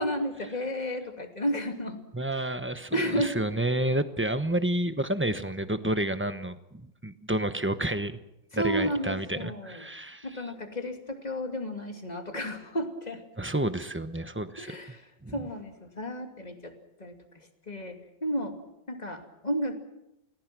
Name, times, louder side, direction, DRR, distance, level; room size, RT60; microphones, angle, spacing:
voice 1, 0.0-2.0 2.3-2.5 2.9-3.4 8.5-9.9 10.2-13.2 14.6-16.7 17.0-18.6 18.9-19.7, equal, 20° left, 4 dB, 2.7 m, -32 dB
voice 2, 2.1-8.2 8.5-10.3 13.4-14.7 15.2-15.4, right 1 dB, 15° right, 10 dB, 0.5 m, -30 dB
29.5 x 20.5 x 6.1 m, 0.88 s
omnidirectional pair, 2.0 m